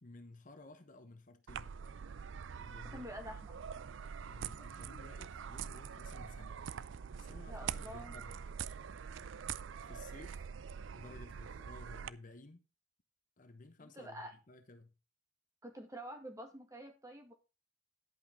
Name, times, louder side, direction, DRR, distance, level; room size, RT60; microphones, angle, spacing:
voice 1, 0.0-1.8 2.6-3.1 4.2-6.6 7.2-8.4 9.8-10.5 10.9-12.6 13.4-14.9, left 2 dB, 40° left, 1.0 m, -55 dB
sound 1, 1.5-12.1, right 7 dB, 75° right, 0.5 m, -44 dB
voice 2, 2.8-3.6 7.5-8.1 13.8-14.3 15.6-17.3, equal, 15° right, 2.0 m, -48 dB
11.0 x 5.7 x 5.5 m
head